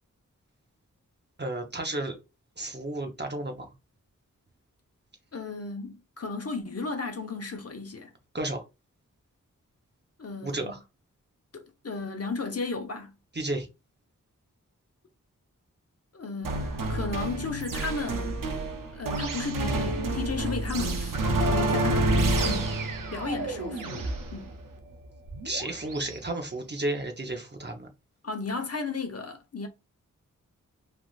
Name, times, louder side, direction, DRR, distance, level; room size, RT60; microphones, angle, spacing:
voice 1, 1.4-2.1 2.6-3.7 8.3-8.6 10.4-10.8 13.3-13.7 25.4-27.9, right 2 dB, 30° right, 0.8 m, -32 dB
voice 2, 5.3-8.1 10.2-10.7 11.5-13.1 16.1-18.4 18.9-22.1 22.4-22.8 23.1-24.5 28.2-29.7, left 4 dB, 50° left, 0.8 m, -34 dB
sound 1, 16.4-26.2, right 2 dB, 75° right, 0.6 m, -29 dB
3.3 x 2.4 x 2.4 m
cardioid pair, 45°, 33 cm